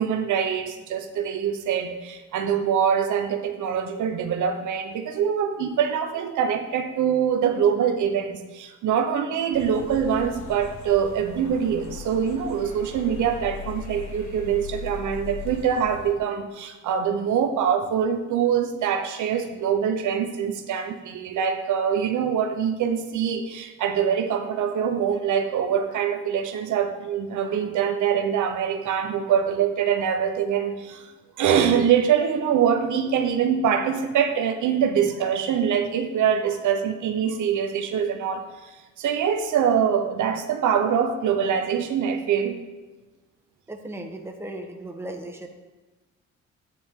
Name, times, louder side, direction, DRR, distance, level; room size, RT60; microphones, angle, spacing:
voice 1, 0.0-31.1 31.4-42.6, right 8 dB, 75° right, 5 dB, 1.0 m, -24 dB
sound 1, 9.5-16.1, left 6 dB, 65° left, 2.0 m, -39 dB
voice 2, 43.7-45.5, right 1 dB, 10° right, 2 dB, 1.4 m, -36 dB
11.5 x 9.4 x 3.8 m, 1.2 s
cardioid pair, 90°, 30 cm